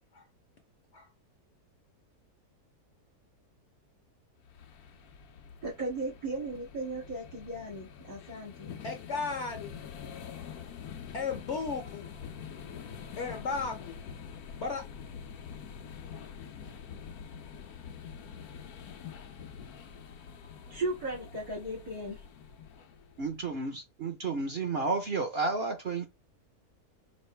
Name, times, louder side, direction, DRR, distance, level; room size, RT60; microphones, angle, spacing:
sound 1, 4.4-23.5, left 7 dB, 75° left, 1.2 m, -46 dB
voice 1, 5.6-8.8 20.7-22.2, right 2 dB, 80° right, 2.7 m, -36 dB
voice 2, 8.8-9.7 11.1-12.1 13.2-14.0 14.6-14.8, left 4 dB, 55° left, 1.0 m, -34 dB
voice 3, 23.2-26.1, right 3 dB, 50° right, 0.7 m, -31 dB
5.4 x 2.5 x 3.3 m
omnidirectional pair, 1.7 m